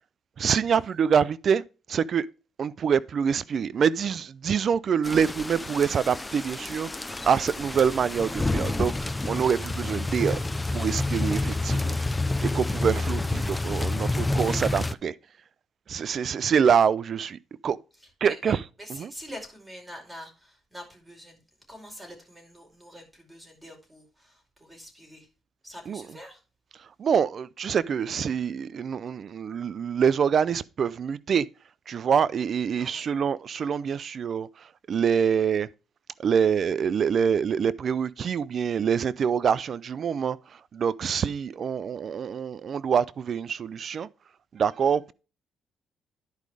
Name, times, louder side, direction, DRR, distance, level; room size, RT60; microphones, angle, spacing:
voice 1, 0.4-1.6 1.9-2.3 2.6-10.4 10.7-12.0 12.4-15.1 15.9-17.8 18.2-18.6 18.9-19.1 25.9-26.0 27.0-31.5 31.9-34.5 34.9-35.7 36.2-40.4 40.7-44.1 44.5-45.1, right 7 dB, 55° right, 0.5 m, -25 dB
sound 1, 5.0-14.9, left 2 dB, 15° left, 0.5 m, -29 dB
voice 2, 18.2-18.5 18.8-21.4 21.7-25.3 25.6-26.4 32.8-33.0, equal, 10° right, 4.9 m, -45 dB
10.5 x 5.2 x 4.8 m
cardioid pair, 90°, 0 cm